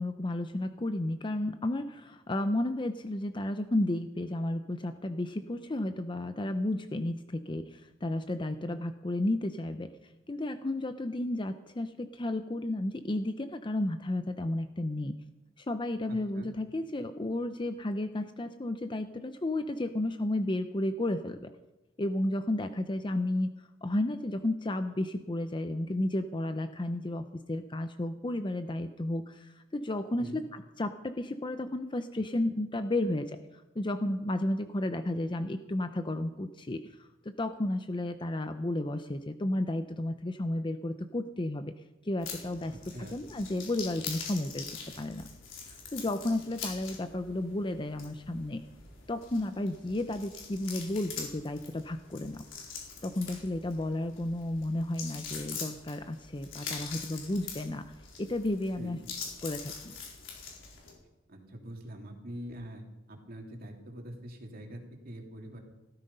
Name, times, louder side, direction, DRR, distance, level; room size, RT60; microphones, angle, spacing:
voice 1, 0.0-9.9 10.3-15.1 15.6-21.5 22.0-23.5 23.8-41.7 42.0-42.7 43.1-44.7 45.0-45.3 45.9-48.6 49.1-52.4 53.0-57.8 58.2-59.0 59.4-59.9, left 1 dB, 25° left, 9 dB, 0.6 m, -32 dB
voice 2, 16.1-16.5 30.2-30.4 42.7-43.2 58.8-59.0 61.3-65.6, equal, 50° right, 2 dB, 2.9 m, -44 dB
sound 1, 42.2-60.9, left 5 dB, 85° left, 4.5 m, -44 dB
16.5 x 14.0 x 5.4 m, 1.0 s
head